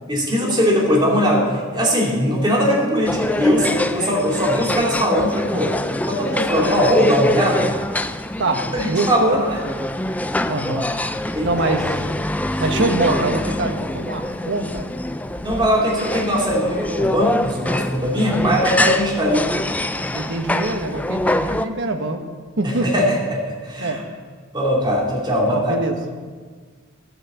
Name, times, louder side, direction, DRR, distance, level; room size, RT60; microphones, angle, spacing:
voice 1, 0.1-5.7 6.0-7.7 8.7-9.6 11.3-11.5 13.1-13.2 15.4-19.4 22.6-24.0 24.5-25.7, equal, 20° right, -3 dB, 2.8 m, -20 dB
sound 1, 3.0-21.7, left 1 dB, 5° left, 0.3 m, -24 dB
voice 2, 8.4-9.4 10.5-11.0 11.4-12.0 12.6-14.9 19.9-22.3 22.6-22.9 23.8-24.1 25.5-26.2, right 2 dB, 60° right, 5 dB, 1.2 m, -24 dB
14.5 x 6.5 x 6.9 m, 1.5 s
head